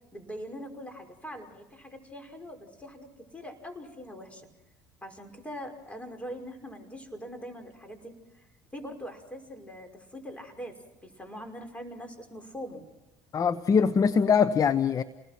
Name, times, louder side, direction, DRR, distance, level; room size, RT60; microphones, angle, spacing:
voice 1, 0.1-4.5 5.0-8.4 8.7-12.8, equal, 15° left, 5 dB, 5.6 m, -42 dB
voice 2, 13.3-15.0, left 6 dB, 35° left, 12 dB, 1.0 m, -22 dB
30.0 x 20.0 x 6.0 m, 1.0 s
hypercardioid pair, 75°, 10 cm